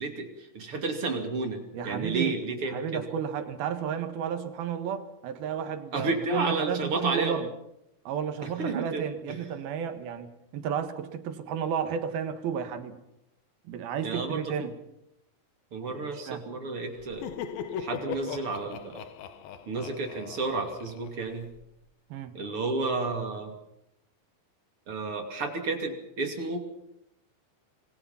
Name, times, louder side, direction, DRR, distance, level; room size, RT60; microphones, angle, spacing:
voice 1, 0.0-3.0 5.9-7.4 8.4-9.4 14.0-14.7 15.7-17.3 17.8-19.0 19.7-21.5 22.3-23.5 24.9-26.6, right 3 dB, 40° right, 4 dB, 3.2 m, -31 dB
voice 2, 1.7-7.5 8.1-13.0 13.7-14.7 16.0-16.4 22.1-22.3, right 8 dB, 85° right, 8 dB, 3.5 m, -32 dB
Laughter, 17.0-21.7, left 8 dB, 80° left, 3.0 m, -39 dB
27.0 x 21.0 x 5.7 m, 0.82 s
omnidirectional pair, 4.2 m